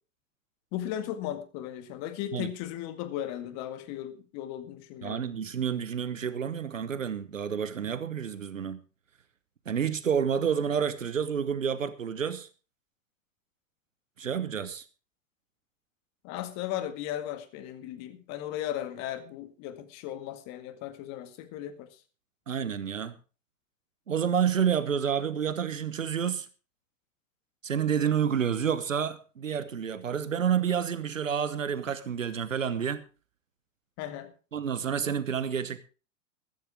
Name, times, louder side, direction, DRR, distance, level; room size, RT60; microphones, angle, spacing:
voice 1, 0.7-5.2 16.2-21.9 34.0-34.3, left 12 dB, 45° left, 2.1 m, -36 dB
voice 2, 5.0-8.8 9.7-12.5 14.2-14.8 22.5-23.1 24.1-26.5 27.6-33.0 34.5-35.8, right 7 dB, 80° right, 1.1 m, -29 dB
14.5 x 14.0 x 3.6 m
figure-of-eight pair, 90°, 38 cm